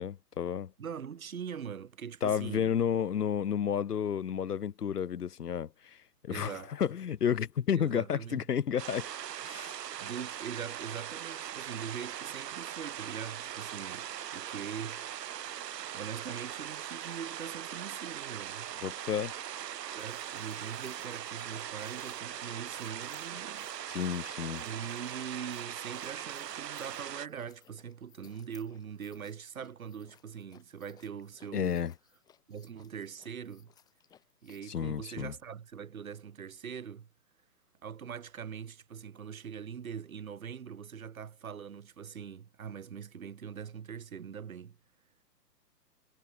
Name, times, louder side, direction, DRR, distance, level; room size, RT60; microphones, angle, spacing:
voice 1, 0.0-0.7 2.2-6.0 6.2-9.1 9.4-9.8 18.8-19.3 23.9-24.6 31.5-31.9 34.7-35.3, left 8 dB, 65° left, 1.3 m, -31 dB
voice 2, 0.8-2.7 6.3-6.7 7.7-8.4 10.0-15.6 15.9-18.7 19.9-23.7 24.5-31.8 32.5-33.7 34.4-37.1 37.8-44.8, right 7 dB, 55° right, 2.5 m, -42 dB
sound 1, 8.8-27.3, right 10 dB, 75° right, 0.8 m, -40 dB
sound 2, 19.9-34.6, left 10 dB, 10° left, 6.4 m, -62 dB
hypercardioid pair, 180°, 49 cm